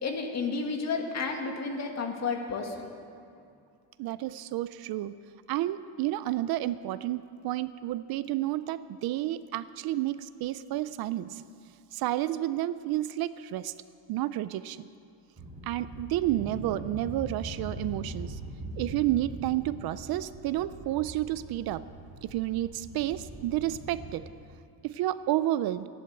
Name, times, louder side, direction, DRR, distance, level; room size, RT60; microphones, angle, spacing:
voice 1, 0.0-2.9, left 4 dB, 35° left, 3 dB, 2.1 m, -31 dB
voice 2, 4.0-5.1 5.5-11.4 11.9-13.7 14.1-14.9 15.6-18.4 18.8-21.8 22.2-24.2 24.8-25.9, right 14 dB, 55° right, 15 dB, 0.5 m, -30 dB
sound 1, 15.4-24.1, right 1 dB, 15° right, 4.9 m, -42 dB
15.5 x 11.0 x 8.1 m, 2.4 s
cardioid pair, 140°, 46 cm